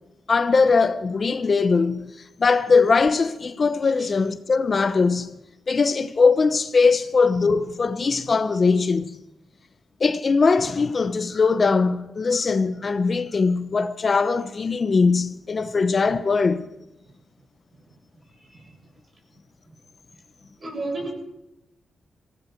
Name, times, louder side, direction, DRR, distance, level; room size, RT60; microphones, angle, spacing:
voice 1, 0.3-2.1 2.4-5.3 5.7-9.2 10.0-16.7, left 4 dB, 50° left, 0.8 m, -20 dB
voice 2, 18.3-18.6 20.6-21.1, right 2 dB, 45° right, 7.3 m, -32 dB
19.5 x 16.0 x 4.5 m
cardioid pair, 60°, 0 cm